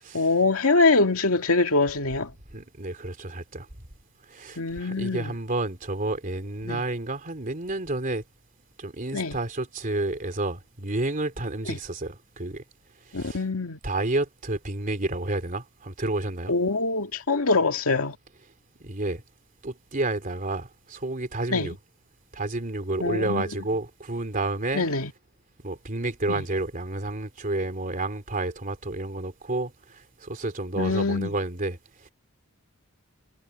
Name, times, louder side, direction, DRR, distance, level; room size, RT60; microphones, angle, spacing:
voice 1, 0.1-2.3 4.6-5.3 6.6-6.8 9.1-9.4 11.7-11.8 13.1-13.8 16.5-18.2 21.5-21.7 23.0-23.4 24.7-25.1 26.3-26.4 30.8-31.3, left 3 dB, 85° left, 2.2 m, -24 dB
voice 2, 2.5-3.7 4.3-8.2 8.8-12.6 13.1-13.4 13.8-16.5 18.8-19.2 19.6-21.8 22.3-24.9 25.6-32.1, right 2 dB, 40° right, 3.1 m, -30 dB
head